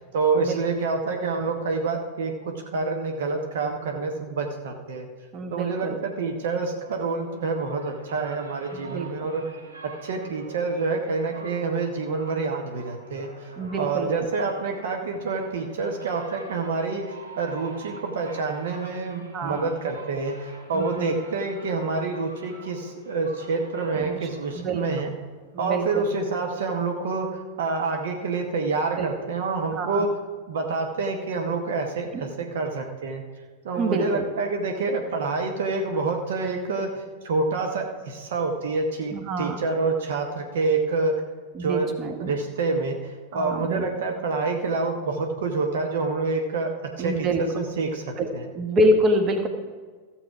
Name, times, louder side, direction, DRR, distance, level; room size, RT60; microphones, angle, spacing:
voice 1, 0.0-5.1 5.5-9.4 9.8-13.5 13.8-17.0 17.4-25.1 25.6-30.1 30.5-33.2 33.6-41.1 41.6-41.9 42.2-48.5, right 4 dB, 60° right, 3 dB, 1.1 m, -27 dB
voice 2, 5.3-6.0 8.7-9.1 13.6-14.3 19.3-19.7 20.7-21.2 23.9-24.2 24.5-24.8 25.5-26.0 29.0-29.1 29.7-30.0 32.1-32.2 33.8-34.2 39.1-39.6 41.5-42.3 43.3-43.9 47.0-47.4 48.2-48.3 48.5-49.5, right 1 dB, 30° right, 6 dB, 1.3 m, -26 dB
sound 1, 6.3-25.7, right 2 dB, 80° right, 2.3 m, -46 dB
14.5 x 7.4 x 4.7 m, 1.5 s
figure-of-eight pair, 90°, 0 cm